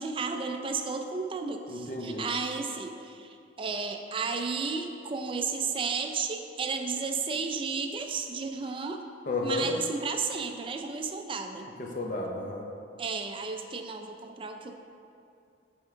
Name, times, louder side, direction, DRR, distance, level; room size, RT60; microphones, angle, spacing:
voice 1, 0.0-9.0 9.4-11.7 13.0-14.8, right 5 dB, 30° right, 5 dB, 0.4 m, -33 dB
voice 2, 1.7-2.3 9.3-9.7 11.8-12.6, left 3 dB, 45° left, 1 dB, 0.7 m, -32 dB
7.4 x 3.6 x 4.4 m, 2.6 s
head